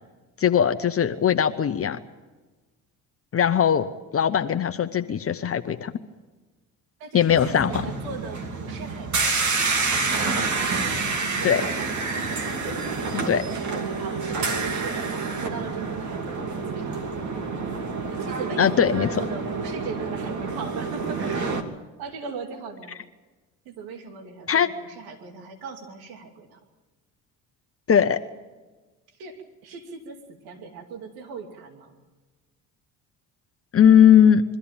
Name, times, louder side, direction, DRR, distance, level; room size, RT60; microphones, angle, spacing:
voice 1, 0.4-2.0 3.3-3.9 4.1-5.9 7.1-7.9 11.4-11.6 13.1-13.4 18.6-19.2 24.5-24.7 27.9-28.2 33.7-34.4, left 8 dB, 35° left, 8 dB, 0.9 m, -19 dB
voice 2, 7.0-9.6 10.5-11.6 13.0-17.1 18.1-21.5 22.0-23.0 23.7-26.6 29.2-31.9, right 5 dB, 75° right, 4 dB, 2.6 m, -39 dB
sound 1, 7.3-21.6, right 4 dB, 50° right, 2.6 m, -28 dB
23.5 x 13.5 x 8.9 m, 1.3 s
supercardioid pair, 70°, 38 cm